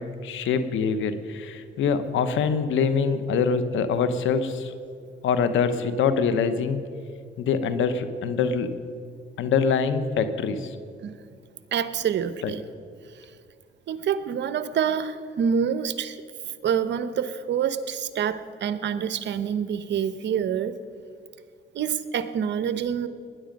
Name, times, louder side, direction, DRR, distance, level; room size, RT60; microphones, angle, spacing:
voice 1, 0.0-4.7 5.2-6.8 7.4-8.7 9.4-10.8 12.4-12.5, left 6 dB, 80° left, 11 dB, 1.0 m, -24 dB
voice 2, 11.7-12.6 13.9-16.2 16.6-20.7 21.7-23.1, right 8 dB, 65° right, 12 dB, 0.9 m, -26 dB
19.0 x 10.0 x 5.3 m, 2.3 s
cardioid pair, 90°, 20 cm